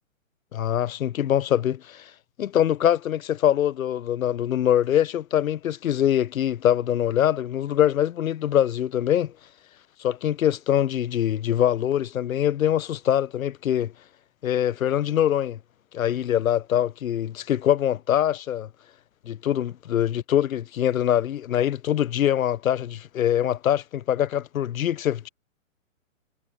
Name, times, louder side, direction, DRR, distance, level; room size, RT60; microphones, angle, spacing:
voice 1, 0.5-2.1 2.4-9.3 10.0-13.9 14.4-15.6 15.9-18.7 19.3-25.3, left 10 dB, 85° left, 0.7 m, -23 dB
hypercardioid pair, 160°, 40 cm